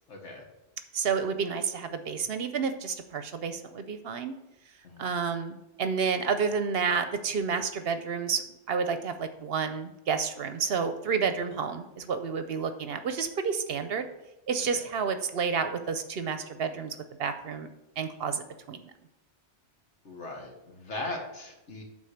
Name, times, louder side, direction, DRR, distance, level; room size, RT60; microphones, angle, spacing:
voice 1, 0.1-0.4 4.8-5.1 11.3-11.4 14.7-14.9 20.1-21.8, left 2 dB, 75° left, 1 dB, 1.8 m, -39 dB
voice 2, 0.9-4.3 5.0-8.4 8.7-14.1 14.5-18.9, right 6 dB, 60° right, 9 dB, 0.8 m, -30 dB
9.1 x 3.9 x 6.5 m, 0.96 s
omnidirectional pair, 1.2 m